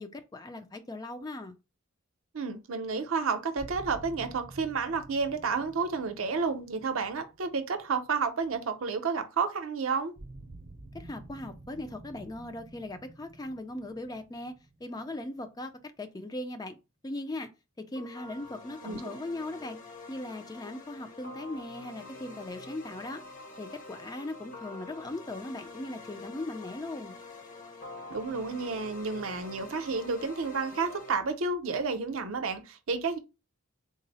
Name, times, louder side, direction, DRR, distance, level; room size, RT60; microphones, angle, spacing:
voice 1, 0.0-1.6 10.9-14.5 14.8-15.7 16.0-16.8 17.0-17.5 17.8-19.8 20.1-23.2 23.6-27.2, left 2 dB, 20° left, 0.3 m, -39 dB
voice 2, 2.3-10.1 18.8-19.2 28.1-33.2, right 4 dB, 70° right, 0.6 m, -31 dB
sound 1, 3.6-8.5 10.2-15.8, right 2 dB, 35° right, 0.6 m, -50 dB
sound 2, 18.0-31.1, left 3 dB, 40° left, 0.8 m, -46 dB
3.8 x 2.0 x 4.0 m
head